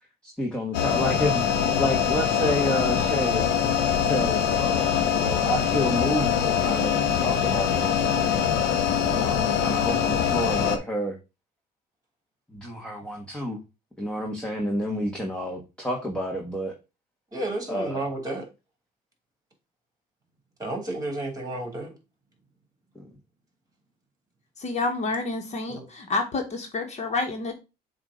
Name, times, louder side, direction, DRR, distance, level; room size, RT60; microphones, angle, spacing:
voice 1, 0.2-3.5 4.0-8.6 9.1-11.2 12.5-13.6 14.0-16.7 17.7-18.1 22.9-23.1, equal, 5° left, 1.3 m, -30 dB
sound 1, 0.7-10.8, left 8 dB, 85° left, 1.0 m, -23 dB
voice 2, 17.3-18.4 20.6-21.9 25.7-25.9, right 2 dB, 20° right, 3.0 m, -31 dB
voice 3, 24.6-27.5, left 3 dB, 40° left, 1.3 m, -29 dB
7.3 x 2.6 x 5.0 m
cardioid pair, 110°, 17 cm